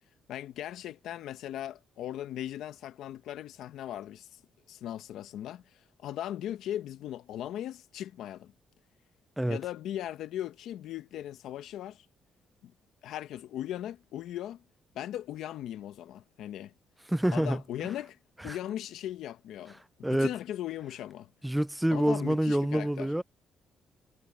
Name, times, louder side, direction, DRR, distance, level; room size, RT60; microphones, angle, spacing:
voice 1, 0.3-4.4 4.7-8.5 9.5-12.0 12.6-12.7 13.0-14.6 14.9-16.7 17.3-18.2 18.4-19.8 20.1-21.3 21.9-23.1, left 12 dB, 80° left, 1.0 m, -38 dB
voice 2, 17.1-17.6 18.4-18.6 20.0-20.3 21.4-23.2, right 1 dB, 5° right, 0.3 m, -27 dB
cardioid pair, 90°, 0 cm